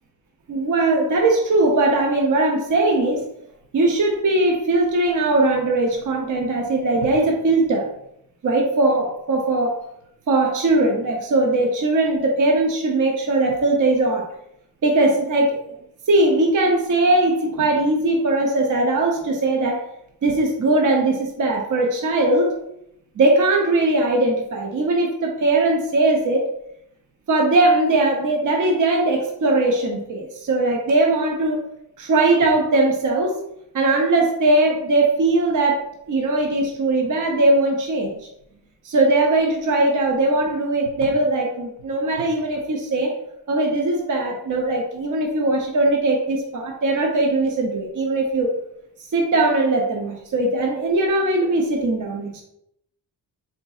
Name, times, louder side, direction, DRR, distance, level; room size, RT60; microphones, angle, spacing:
voice 1, 0.5-3.3 3.7-7.9 8.4-9.8 10.3-14.3 14.8-15.6 16.1-19.8 20.2-22.6 23.2-26.5 27.3-31.6 32.0-33.4 33.7-38.2 38.8-43.2 43.5-48.5 49.1-52.4, right 2 dB, 45° right, 1 dB, 0.7 m, -20 dB
3.9 x 3.8 x 2.3 m, 0.77 s
cardioid pair, 90°, 43 cm